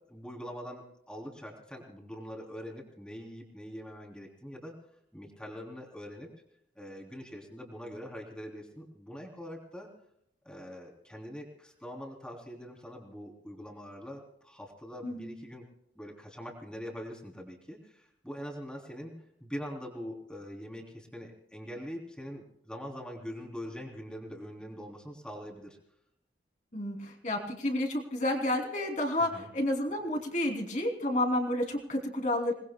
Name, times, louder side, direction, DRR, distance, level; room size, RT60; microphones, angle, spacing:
voice 1, 0.1-4.7 5.1-6.3 6.7-9.9 10.4-15.7 15.9-25.8 29.2-29.5, equal, 5° left, 0 dB, 3.2 m, -43 dB
voice 2, 15.0-15.3 26.7-32.5, left 1 dB, 40° left, 2 dB, 2.8 m, -30 dB
27.5 x 20.0 x 2.2 m, 0.75 s
head